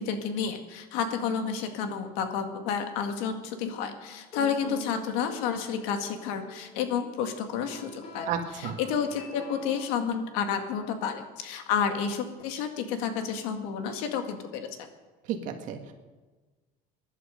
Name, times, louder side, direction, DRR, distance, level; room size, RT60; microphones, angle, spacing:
voice 1, 0.0-8.3 8.8-14.7, left 7 dB, 90° left, 6 dB, 2.0 m, -30 dB
sound 1, 4.0-10.1, left 1 dB, 40° left, 3.1 m, -44 dB
voice 2, 8.3-8.8 15.3-15.9, right 7 dB, 50° right, 5 dB, 1.9 m, -32 dB
22.0 x 11.0 x 5.2 m, 1.3 s
cardioid pair, 160°, 16 cm